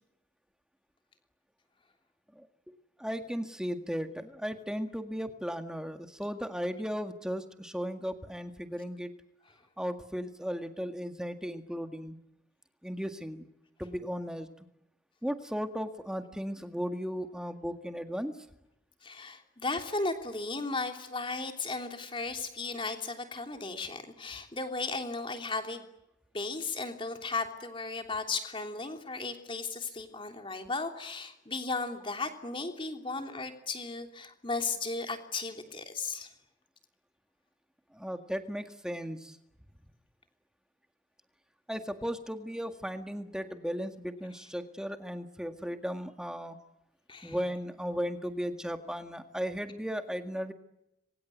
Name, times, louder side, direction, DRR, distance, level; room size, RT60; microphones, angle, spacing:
voice 1, 3.0-9.1 9.8-12.2 12.8-13.5 13.8-14.5 15.2-18.3 37.9-39.4 41.7-46.6 47.2-50.5, equal, 5° right, 7 dB, 1.8 m, -36 dB
voice 2, 19.0-25.9 26.3-36.3 47.1-47.4, left 3 dB, 25° left, 5 dB, 3.2 m, -35 dB
26.5 x 24.0 x 9.3 m, 0.87 s
head